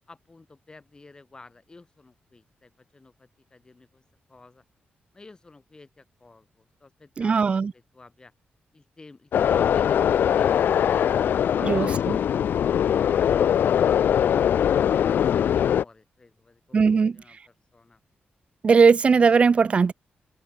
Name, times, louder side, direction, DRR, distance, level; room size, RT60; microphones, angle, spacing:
voice 1, 0.1-4.0 4.3-4.6 5.1-8.3 8.7-12.4 15.1-18.0, left 3 dB, 20° left, 6.8 m, -50 dB
voice 2, 7.2-7.7 11.6-12.2 16.7-17.2 18.6-19.9, right 5 dB, 35° right, 0.4 m, -19 dB
sound 1, 9.3-15.8, left 9 dB, 70° left, 0.3 m, -21 dB
wide cardioid pair, 155°, 4 cm